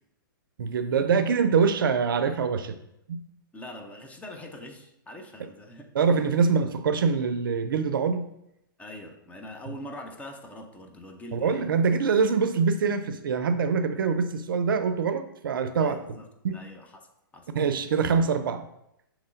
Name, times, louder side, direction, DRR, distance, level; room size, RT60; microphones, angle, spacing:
voice 1, 0.6-2.7 3.1-3.2 5.9-8.3 11.3-16.0 16.4-16.6 17.5-18.6, right 5 dB, 70° right, 9 dB, 0.5 m, -24 dB
voice 2, 3.5-5.9 8.8-11.7 15.8-16.3 16.5-17.1 17.3-17.5, left 1 dB, 10° left, 3 dB, 0.6 m, -43 dB
6.5 x 3.0 x 2.5 m, 0.80 s
hypercardioid pair, 120°, 12 cm